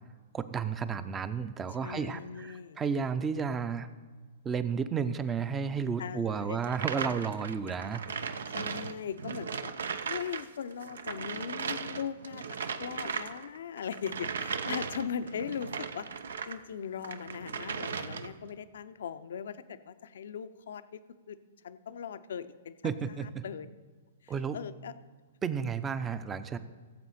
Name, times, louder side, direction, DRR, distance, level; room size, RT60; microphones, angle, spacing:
voice 1, 0.3-3.9 4.4-8.0 22.8-23.4 24.3-24.6 25.4-26.6, right 6 dB, 20° right, 13 dB, 0.6 m, -32 dB
voice 2, 1.8-2.8 6.0-6.6 8.5-9.7 10.1-16.1 16.5-21.0 21.3-21.4 21.6-22.7 23.1-23.7 24.2-24.9, left 7 dB, 70° left, 12 dB, 0.6 m, -39 dB
sound 1, 6.6-10.5 10.7-16.6 17.0-18.5, right 6 dB, 75° right, 0.6 m, -37 dB
16.5 x 7.5 x 4.3 m, 1.4 s
hypercardioid pair, 120°, 0 cm